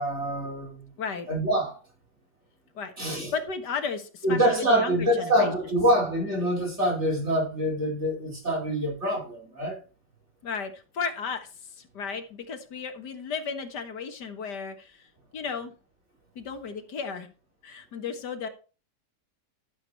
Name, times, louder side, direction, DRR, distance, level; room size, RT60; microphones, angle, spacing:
voice 1, 0.0-0.9 1.3-1.7 3.0-3.3 4.2-9.8, right 1 dB, 40° right, 5.3 m, -25 dB
voice 2, 2.7-5.5 10.4-15.7 16.4-17.3 17.6-18.5, left 5 dB, 80° left, 2.0 m, -34 dB
12.5 x 6.9 x 4.4 m
omnidirectional pair, 1.8 m